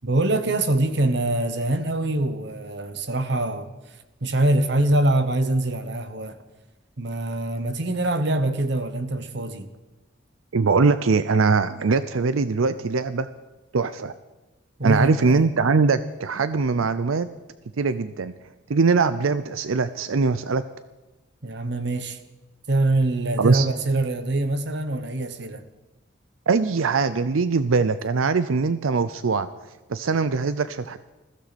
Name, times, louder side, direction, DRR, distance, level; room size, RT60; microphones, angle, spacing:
voice 1, 0.0-3.7 4.2-6.4 7.0-9.7 14.8-15.4 21.4-22.2 22.7-25.6, right 1 dB, 55° right, 1.2 m, -24 dB
voice 2, 10.5-13.3 13.7-14.1 14.8-17.3 17.8-18.3 18.7-20.6 23.4-23.7 26.5-29.5 29.9-31.0, right 4 dB, 90° right, 0.6 m, -21 dB
20.5 x 15.5 x 4.2 m
head